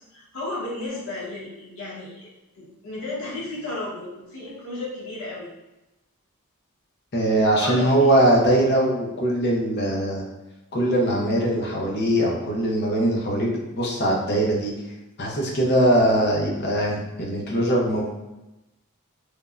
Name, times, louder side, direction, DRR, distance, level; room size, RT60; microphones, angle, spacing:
voice 1, 0.1-2.3 2.5-5.5 7.6-8.1, left 2 dB, 70° left, -7 dB, 1.0 m, -33 dB
voice 2, 7.1-10.2 10.7-14.7 15.2-18.1, right 1 dB, 50° left, -2 dB, 0.6 m, -21 dB
3.3 x 2.1 x 2.4 m, 0.99 s
head